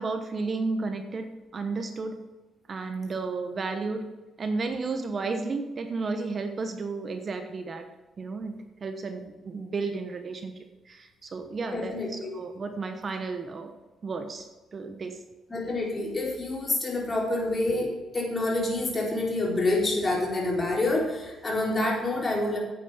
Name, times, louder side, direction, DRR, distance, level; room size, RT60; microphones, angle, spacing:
voice 1, 0.0-2.2 2.7-4.1 4.4-7.9 8.2-10.5 10.8-13.7 14.0-14.5 14.7-15.2, right 3 dB, 40° right, 6 dB, 1.1 m, -33 dB
voice 2, 11.7-12.3 15.5-22.6, left 2 dB, 25° left, -2 dB, 4.2 m, -27 dB
9.4 x 8.8 x 5.6 m, 1.2 s
cardioid pair, 90°, 0 cm